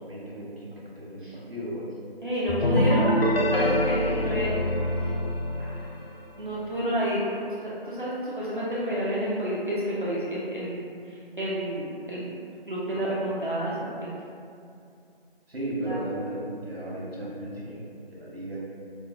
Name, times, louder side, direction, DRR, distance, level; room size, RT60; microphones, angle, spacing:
voice 1, 0.0-1.9 2.7-2.9 3.2-3.7 4.0-4.6 15.5-18.6, right 1 dB, 75° right, -6 dB, 1.1 m, -36 dB
voice 2, 2.2-3.1 3.5-4.5 5.6-5.9 6.4-7.3 7.6-12.4 12.7-14.1 15.9-16.0, equal, 55° right, -8 dB, 0.6 m, -30 dB
sound 1, 2.5-6.2, left 1 dB, 70° left, 0.6 m, -25 dB
4.4 x 2.1 x 2.6 m, 2.5 s
figure-of-eight pair, 180°, 30 cm